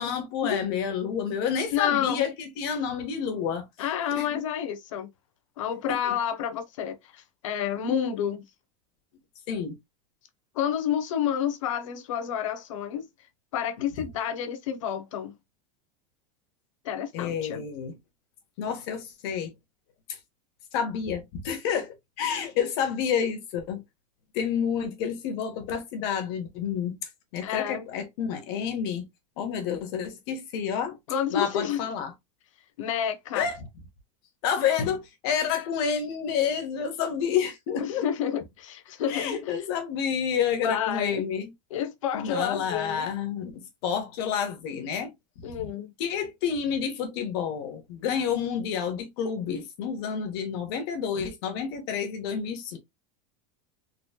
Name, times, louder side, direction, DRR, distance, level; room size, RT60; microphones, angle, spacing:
voice 1, 0.0-3.7 4.1-4.4 5.9-6.1 9.5-9.7 17.1-18.0 18.6-19.5 20.1-20.2 20.7-23.8 24.3-29.0 29.4-31.0 31.3-32.1 33.3-33.7 34.4-38.1 39.1-41.5 42.1-45.1 46.0-52.8, left 7 dB, 50° left, 1.2 m, -29 dB
voice 2, 1.7-2.2 3.8-5.1 5.6-8.4 10.5-13.1 13.5-15.3 16.8-17.6 27.4-27.9 31.1-31.8 32.8-33.5 37.8-39.3 40.6-41.2 41.7-43.1 45.4-45.9, left 9 dB, 90° left, 0.9 m, -29 dB
4.0 x 3.1 x 2.2 m
supercardioid pair, 170°, 16 cm